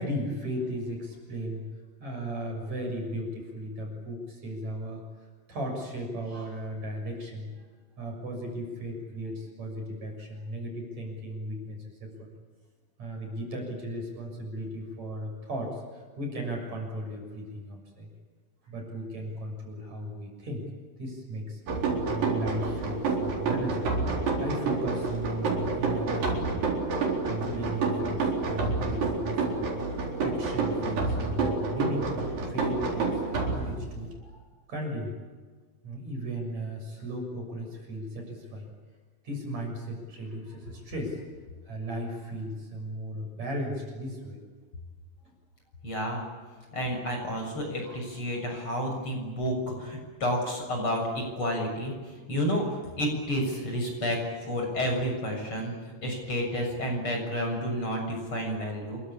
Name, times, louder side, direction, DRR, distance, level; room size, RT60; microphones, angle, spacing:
voice 1, 0.0-1.7 2.0-5.0 5.5-7.5 8.0-12.3 13.0-18.1 18.6-20.6 21.0-21.6 22.1-24.0 24.4-35.2 35.8-38.7 39.2-41.2 41.6-44.4 47.8-48.0, equal, 50° right, 2 dB, 7.9 m, -36 dB
sound 1, 21.7-34.1, right 3 dB, 70° right, 5.8 m, -29 dB
voice 2, 45.8-46.2 46.7-59.0, equal, 35° left, 1 dB, 7.7 m, -30 dB
29.0 x 23.0 x 8.7 m, 1.4 s
omnidirectional pair, 4.2 m